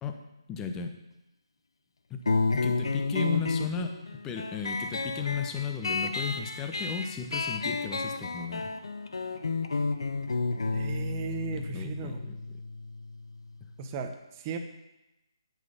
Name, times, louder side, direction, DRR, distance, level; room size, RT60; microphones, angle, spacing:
voice 1, 0.5-0.9 2.1-2.3 2.5-8.7 11.5-12.4, left 6 dB, 15° left, 5 dB, 0.8 m, -35 dB
sound 1, 2.3-13.4, left 3 dB, 65° left, 0.7 m, -31 dB
voice 2, 10.7-12.2 13.8-14.6, right 5 dB, 25° right, 5 dB, 0.8 m, -36 dB
9.3 x 5.9 x 5.4 m, 0.96 s
figure-of-eight pair, 145°, 3 cm